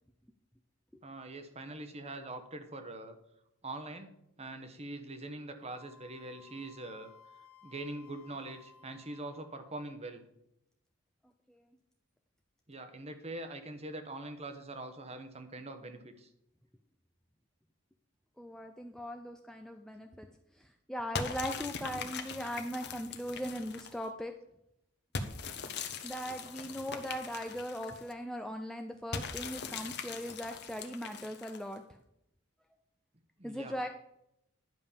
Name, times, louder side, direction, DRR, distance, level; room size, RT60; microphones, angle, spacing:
voice 1, 1.0-3.2 3.6-4.1 4.4-7.1 7.6-10.2 12.7-16.3 33.4-33.7, right 2 dB, 30° right, 8 dB, 1.0 m, -43 dB
Wind instrument woodwind instrument, 5.7-9.9, left 5 dB, 80° left, 1.2 m, -58 dB
voice 2, 18.4-20.3 20.6-24.3 26.0-32.0 33.4-33.9, equal, ahead, 4 dB, 0.4 m, -39 dB
sound 1, 21.1-24.0 25.1-28.1 29.1-31.8, left 5 dB, 50° left, 1.0 m, -41 dB
11.0 x 5.3 x 7.2 m, 0.80 s
head